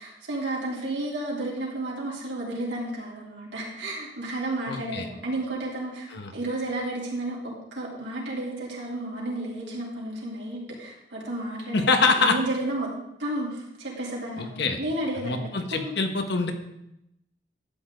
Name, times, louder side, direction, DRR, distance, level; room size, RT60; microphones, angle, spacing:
voice 1, 0.0-12.9 13.2-15.9, right 1 dB, 70° right, -4 dB, 3.5 m, -32 dB
voice 2, 4.7-5.1 6.1-6.3 11.7-12.4 14.4-14.8 15.2-16.5, left 4 dB, 65° left, 5 dB, 1.3 m, -24 dB
12.0 x 8.8 x 3.9 m, 0.83 s
head